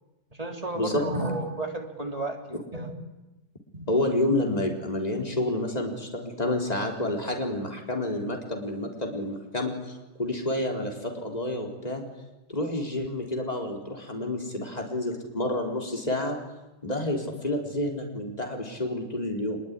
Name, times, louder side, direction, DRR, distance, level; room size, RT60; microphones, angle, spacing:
voice 1, 0.3-3.0 3.7-3.9, right 2 dB, 35° right, 3 dB, 3.5 m, -33 dB
voice 2, 3.9-12.0 12.5-16.4 16.8-19.6, left 1 dB, 35° left, 1 dB, 4.2 m, -29 dB
25.0 x 22.5 x 9.9 m, 1.0 s
omnidirectional pair, 1.2 m